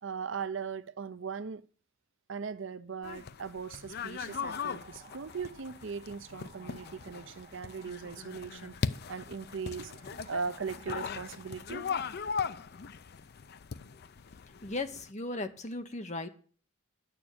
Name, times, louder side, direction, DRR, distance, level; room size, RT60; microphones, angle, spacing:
voice 1, 0.0-1.6 2.3-11.9, right 5 dB, 65° right, 0.6 m, -39 dB
sound 1, 3.0-15.1, left 6 dB, 50° left, 0.5 m, -39 dB
sound 2, 4.2-12.9, right 5 dB, 35° right, 2.0 m, -58 dB
voice 2, 14.6-16.3, left 2 dB, 35° left, 1.1 m, -36 dB
9.7 x 7.0 x 8.8 m
head